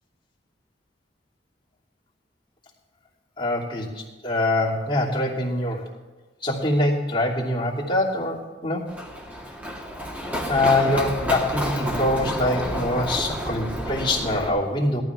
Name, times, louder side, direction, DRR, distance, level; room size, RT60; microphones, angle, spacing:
voice 1, 3.4-5.9 6.4-8.9 10.5-15.0, left 1 dB, 30° left, -4 dB, 2.8 m, -24 dB
Run, 8.9-14.5, equal, 10° right, 2.2 m, -30 dB
17.5 x 12.5 x 3.5 m, 1.3 s
head